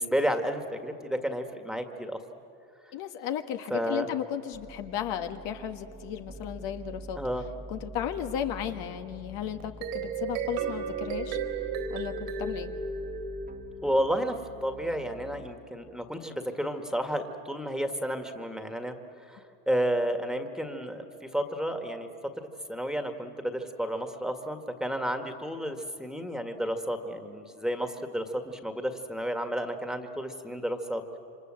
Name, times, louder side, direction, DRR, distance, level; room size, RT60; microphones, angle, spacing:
voice 1, 0.0-2.2 3.7-4.1 7.1-7.5 13.8-14.4 14.6-19.0 19.3-22.1 22.7-31.2, equal, ahead, 6 dB, 1.9 m, -31 dB
voice 2, 2.9-7.2 7.7-11.4 11.9-12.7, left 10 dB, 65° left, 6 dB, 1.6 m, -34 dB
sound 1, 4.5-15.5, right 2 dB, 20° right, 1.3 m, -46 dB
sound 2, 9.6-13.9, right 5 dB, 80° right, 3.9 m, -34 dB
28.5 x 25.5 x 7.8 m, 2.8 s
supercardioid pair, 100°, 48 cm